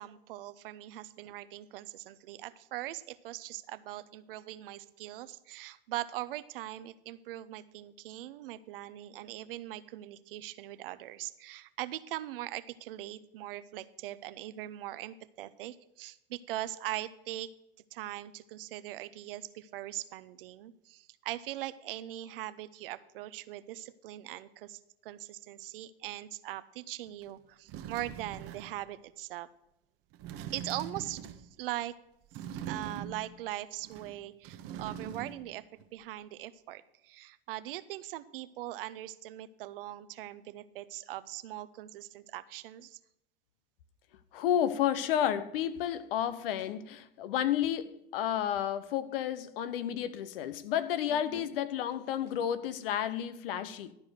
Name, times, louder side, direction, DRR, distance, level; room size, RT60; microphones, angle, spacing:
voice 1, 0.0-17.5 17.9-29.5 30.5-31.9 32.7-35.6 35.9-43.0 51.1-51.5, right 14 dB, 70° right, 0.8 m, -41 dB
sound 1, 27.2-27.3 27.7-28.8 30.1-31.5 32.3-33.4 33.8-35.5 35.8-35.9, right 8 dB, 50° right, 1.1 m, -42 dB
voice 2, 44.3-53.9, left 10 dB, 70° left, 1.0 m, -31 dB
12.5 x 4.8 x 7.8 m
hypercardioid pair, 100°, 29 cm